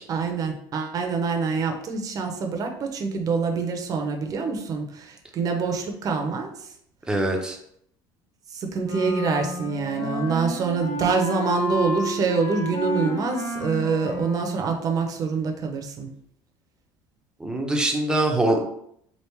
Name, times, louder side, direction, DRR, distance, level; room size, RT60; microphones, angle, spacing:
voice 1, 0.1-6.7 8.5-16.1, right 5 dB, 40° right, 3 dB, 0.8 m, -26 dB
voice 2, 7.1-7.6 17.4-18.6, right 2 dB, 10° right, 2 dB, 0.7 m, -23 dB
Wind instrument woodwind instrument, 8.8-14.7, left 1 dB, 40° left, 1.0 m, -31 dB
3.4 x 2.5 x 4.5 m, 0.70 s
supercardioid pair, 115°, 9 cm